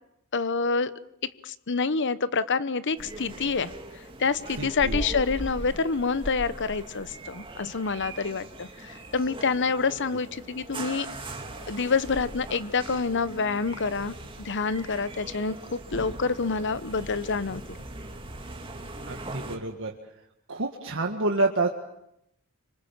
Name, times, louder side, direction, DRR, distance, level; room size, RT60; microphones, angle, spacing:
voice 1, 0.3-0.9 1.4-3.7 4.2-11.1 11.7-17.8, left 4 dB, 55° left, 15 dB, 1.0 m, -27 dB
sound 1, 3.0-19.6, right 1 dB, 25° right, 2.5 m, -40 dB
voice 2, 4.6-5.0 19.1-19.9 20.5-21.7, right 2 dB, 65° right, 2 dB, 1.9 m, -28 dB
26.5 x 25.0 x 7.4 m, 0.81 s
head